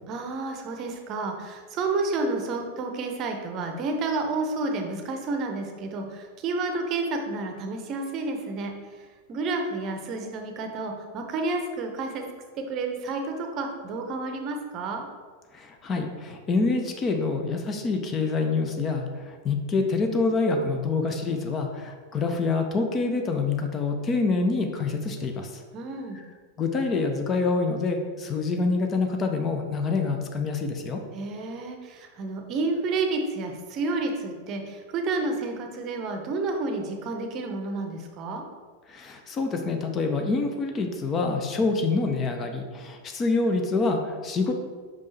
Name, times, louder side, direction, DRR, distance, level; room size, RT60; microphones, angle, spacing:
voice 1, 0.1-12.2 12.7-15.0 25.7-26.2 31.1-38.4, right 3 dB, 35° right, 4 dB, 0.7 m, -30 dB
voice 2, 15.5-25.6 26.6-31.0 38.9-44.5, left 3 dB, 25° left, 4 dB, 0.6 m, -26 dB
5.4 x 5.3 x 3.3 m, 1.5 s
figure-of-eight pair, 90°, 0 cm